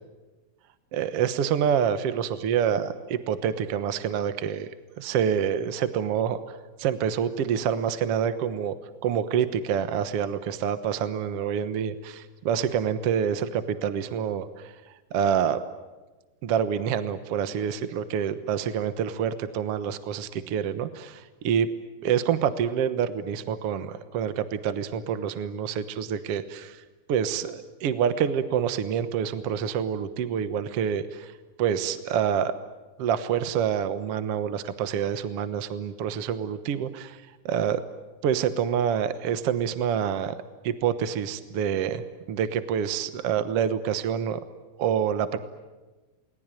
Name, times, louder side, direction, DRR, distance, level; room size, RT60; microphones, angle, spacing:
voice 1, 0.9-4.7 5.0-8.7 9.0-14.7 15.1-15.6 16.4-21.7 22.0-26.8 27.1-31.3 31.6-32.5 33.0-37.8 38.2-40.3 40.6-42.0 42.3-44.4 44.8-45.4, right 8 dB, 60° right, 11 dB, 1.7 m, -27 dB
29.5 x 20.5 x 9.0 m, 1.2 s
omnidirectional pair, 3.9 m